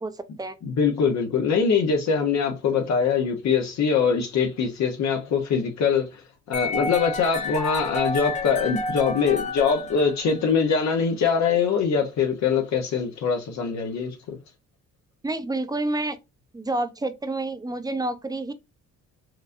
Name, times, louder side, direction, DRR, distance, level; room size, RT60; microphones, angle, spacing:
voice 1, 0.0-0.5 15.2-16.2 16.5-18.5, right 2 dB, 15° right, 0.6 m, -29 dB
voice 2, 0.6-6.2 6.5-14.4, left 6 dB, 65° left, 0.8 m, -23 dB
sound 1, 6.5-10.6, left 2 dB, 25° left, 0.7 m, -30 dB
4.6 x 2.6 x 2.5 m
cardioid pair, 90°, 30 cm